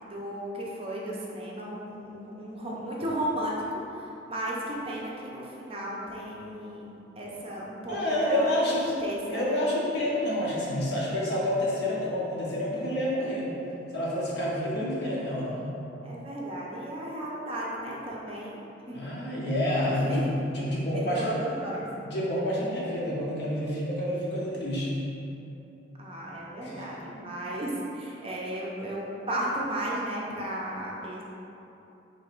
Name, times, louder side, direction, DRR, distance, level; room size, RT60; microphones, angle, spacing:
voice 1, 0.0-9.6 16.0-18.6 18.9-19.1 19.9-20.2 20.9-21.9 26.0-31.2, right 1 dB, 30° right, -4 dB, 0.5 m, -35 dB
voice 2, 7.9-8.8 9.3-13.5 13.9-15.7 18.9-21.3 22.0-25.1 26.6-26.9, left 1 dB, 60° left, -6 dB, 0.9 m, -28 dB
3.1 x 2.9 x 4.4 m, 2.9 s
head